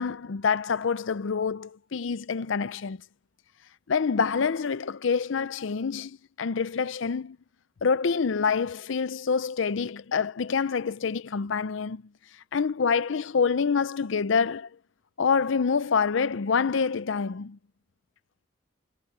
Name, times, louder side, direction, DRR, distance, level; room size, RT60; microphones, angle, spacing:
voice 1, 0.0-3.0 3.9-7.4 7.8-12.0 12.5-14.7 15.2-17.6, left 5 dB, 75° left, 0.5 m, -26 dB
head